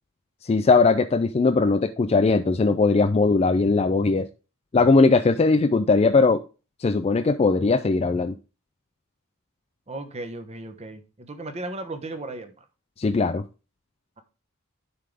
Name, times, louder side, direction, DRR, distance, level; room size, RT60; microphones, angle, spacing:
voice 1, 0.4-4.3 4.7-6.4 6.8-8.4 13.0-13.4, left 3 dB, 30° left, 0.3 m, -19 dB
voice 2, 9.9-12.6, right 2 dB, 30° right, 1.0 m, -36 dB
11.0 x 3.7 x 3.3 m
head